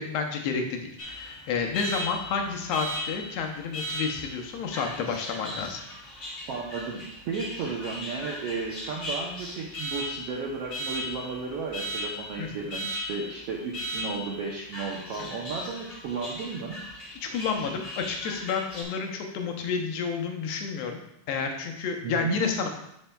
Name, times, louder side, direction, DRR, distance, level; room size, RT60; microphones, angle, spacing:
voice 1, 0.0-5.8 12.4-12.5 15.2-15.3 17.2-21.0 21.3-22.7, left 5 dB, 80° left, 3 dB, 1.6 m, -30 dB
Alarm, 1.0-18.8, equal, 45° left, 0.9 m, -37 dB
voice 2, 6.5-16.8 22.0-22.4, right 4 dB, 85° right, -3 dB, 1.4 m, -34 dB
11.0 x 4.5 x 2.2 m, 0.78 s
omnidirectional pair, 3.7 m